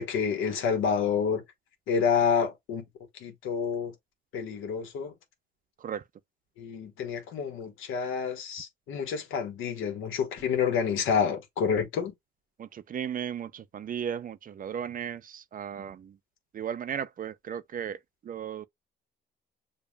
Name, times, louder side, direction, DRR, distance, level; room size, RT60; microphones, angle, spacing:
voice 1, 0.0-1.4 1.9-2.8 3.1-3.9 4.3-5.1 6.6-12.1, left 6 dB, 90° left, 1.3 m, -28 dB
voice 2, 12.6-16.1 16.5-18.0 18.2-18.7, right 8 dB, 45° right, 0.5 m, -35 dB
6.9 x 2.4 x 2.3 m
cardioid pair, 90°, 20 cm